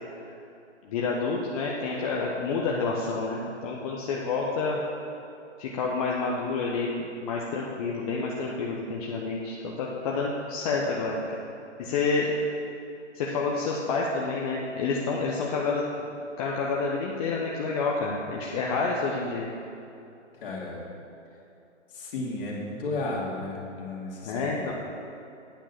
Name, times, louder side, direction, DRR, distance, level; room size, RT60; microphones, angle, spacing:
voice 1, 0.8-4.8 5.6-11.2 11.8-12.5 13.1-15.8 16.4-19.5 24.2-24.7, left 4 dB, 30° left, -3 dB, 1.0 m, -29 dB
voice 2, 20.4-20.8 21.9-24.7, left 2 dB, 45° left, -2 dB, 2.6 m, -33 dB
9.2 x 7.3 x 7.2 m, 2.7 s
hypercardioid pair, 140°, 37 cm